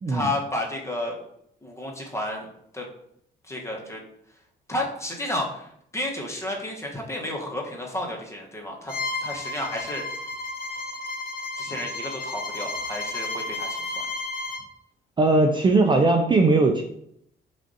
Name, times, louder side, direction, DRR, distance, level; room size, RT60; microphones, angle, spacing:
voice 1, 0.1-1.2 1.6-2.5 2.7-2.9 3.4-4.0 4.7-10.0 11.6-14.1, left 1 dB, 15° left, 0 dB, 1.0 m, -32 dB
Bowed string instrument, 8.9-14.7, left 2 dB, 45° left, 0.7 m, -32 dB
voice 2, 15.2-16.8, right 3 dB, 25° right, 3 dB, 0.4 m, -19 dB
6.0 x 2.5 x 2.7 m, 0.73 s
cardioid pair, 90°, 20 cm